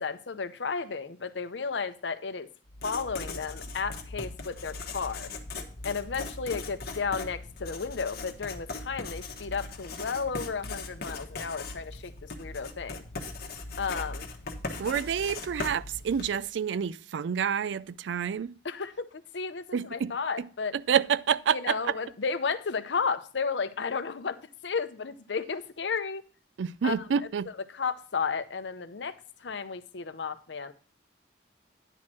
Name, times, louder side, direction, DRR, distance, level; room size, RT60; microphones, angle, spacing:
voice 1, 0.0-2.5 2.8-5.3 5.8-13.0 13.8-14.3 18.6-20.7 21.5-24.4 24.6-26.2 26.8-27.0 27.7-30.7, left 5 dB, 80° left, 0.7 m, -33 dB
Writing, 2.7-16.5, left 3 dB, 55° left, 1.2 m, -39 dB
voice 2, 14.8-18.5 19.7-20.5 20.9-21.8 26.6-27.5, right 7 dB, 85° right, 0.4 m, -28 dB
10.0 x 4.3 x 6.0 m
head